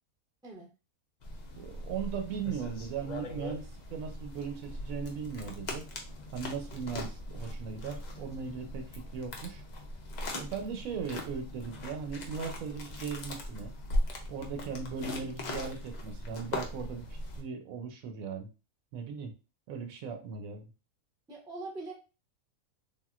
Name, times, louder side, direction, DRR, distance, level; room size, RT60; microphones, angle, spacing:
sound 1, 1.2-17.4, left 1 dB, 85° left, 0.3 m, -39 dB
voice 1, 1.5-5.9 6.3-9.6 10.3-13.7 14.3-17.1 17.4-18.5 18.9-19.3 19.7-20.6, right 6 dB, 70° right, 6 dB, 1.0 m, -38 dB
voice 2, 21.3-21.9, right 2 dB, 5° right, -2 dB, 0.4 m, -42 dB
3.6 x 2.5 x 2.4 m, 0.31 s
omnidirectional pair, 1.5 m